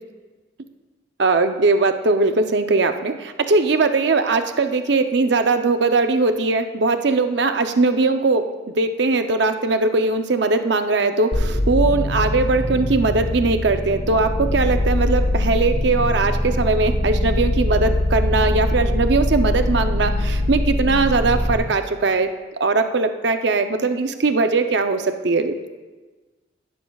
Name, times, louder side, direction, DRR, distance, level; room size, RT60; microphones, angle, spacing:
voice 1, 1.2-22.3 22.6-25.5, right 3 dB, 60° right, 7 dB, 0.6 m, -20 dB
sound 1, 11.3-21.6, left 1 dB, 70° left, 1.8 m, -22 dB
15.5 x 12.5 x 2.3 m, 1.3 s
head